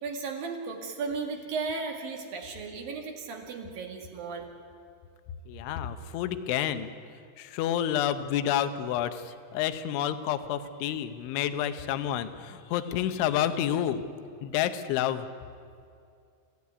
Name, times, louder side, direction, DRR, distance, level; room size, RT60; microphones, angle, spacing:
voice 1, 0.0-4.5, right 4 dB, 55° right, 3 dB, 3.5 m, -35 dB
voice 2, 5.5-6.9 7.4-14.0 14.4-15.3, left 10 dB, 85° left, 10 dB, 3.4 m, -29 dB
29.0 x 16.0 x 9.7 m, 2.4 s
omnidirectional pair, 5.4 m